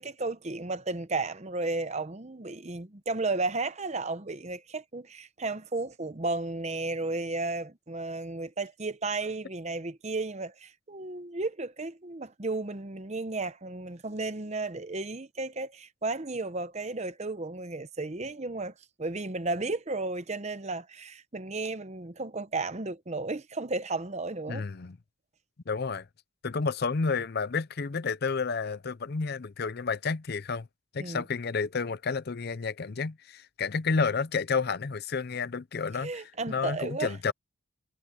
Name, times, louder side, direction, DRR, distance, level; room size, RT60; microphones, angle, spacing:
voice 1, 0.0-18.7 19.0-24.7 31.0-31.2 36.0-37.2, right 3 dB, 30° right, 0.8 m, -33 dB
voice 2, 24.5-25.0 25.7-26.1 26.4-30.7 30.9-37.3, left 5 dB, 45° left, 0.5 m, -30 dB
head